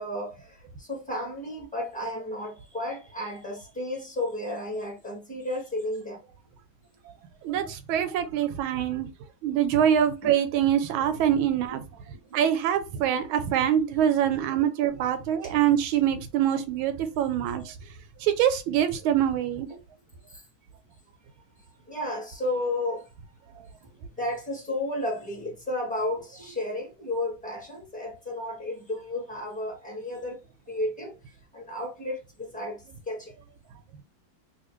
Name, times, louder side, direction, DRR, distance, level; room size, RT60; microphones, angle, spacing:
voice 1, 0.0-6.2 10.2-10.3 12.3-12.4 15.4-15.5 20.3-20.4 21.8-23.1 24.2-30.4 30.7-31.1 31.5-32.8 33.1-33.3, left 1 dB, 5° left, 0.8 m, -33 dB
voice 2, 7.4-9.1 9.4-11.8 12.3-17.7 18.2-19.7, right 10 dB, 90° right, 1.4 m, -24 dB
3.1 x 2.7 x 3.0 m
omnidirectional pair, 2.2 m